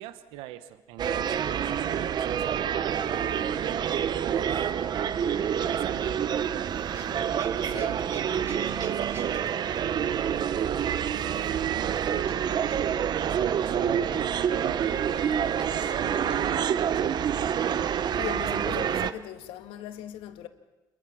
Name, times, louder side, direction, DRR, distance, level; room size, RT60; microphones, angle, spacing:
voice 1, 0.0-6.7 7.7-9.6 9.8-17.5, right 12 dB, 85° right, 1.1 m, -42 dB
sound 1, 1.0-19.1, right 8 dB, 50° right, 0.9 m, -27 dB
Male speech man speaking / Vehicle / Engine starting, 6.9-12.8, right 3 dB, 30° right, 3.7 m, -50 dB
voice 2, 7.6-8.0 18.1-20.5, left 11 dB, 80° left, 1.6 m, -39 dB
sound 2, 13.3-15.0 15.6-15.7 16.3-16.4 17.0-17.2 17.7-17.9 18.4-18.6, right 1 dB, 10° right, 5.6 m, -49 dB
27.5 x 22.5 x 6.0 m
supercardioid pair, 80°, 9 cm